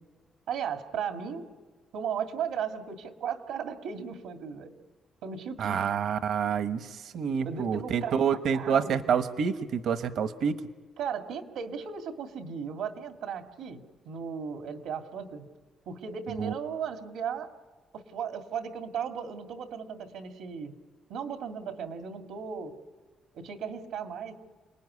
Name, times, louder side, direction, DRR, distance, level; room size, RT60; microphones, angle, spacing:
voice 1, 0.5-1.5 1.9-4.7 5.2-5.9 7.4-8.2 8.5-9.0 11.0-15.5 15.9-17.5 17.9-20.7 21.1-22.7 23.3-24.3, right 7 dB, 85° right, 5 dB, 2.3 m, -36 dB
voice 2, 5.6-10.6 16.4-16.5, right 7 dB, 70° right, 9 dB, 1.2 m, -28 dB
29.5 x 20.0 x 9.7 m, 1.4 s
cardioid pair, 90°, 0 cm